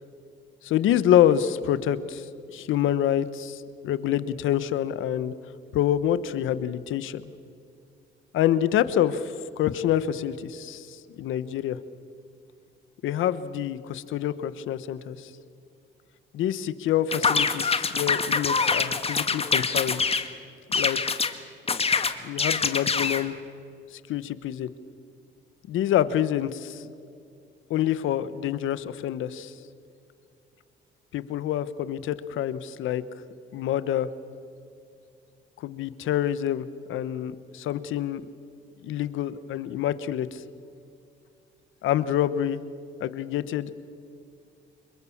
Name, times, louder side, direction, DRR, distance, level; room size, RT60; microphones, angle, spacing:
voice 1, 0.6-5.3 5.7-7.2 8.3-11.8 13.0-15.3 16.3-20.0 20.7-21.1 22.2-23.3 23.9-24.7 25.7-26.8 27.7-29.5 31.1-33.0 33.5-34.1 35.6-38.2 38.8-40.4 41.8-42.6 43.0-43.7, left 11 dB, 85° left, 14 dB, 1.1 m, -26 dB
sound 1, 17.1-20.3 20.7-21.3 21.7-23.2, left 4 dB, 30° left, 1.6 m, -25 dB
26.5 x 22.5 x 7.2 m, 2.5 s
cardioid pair, 90°, 20 cm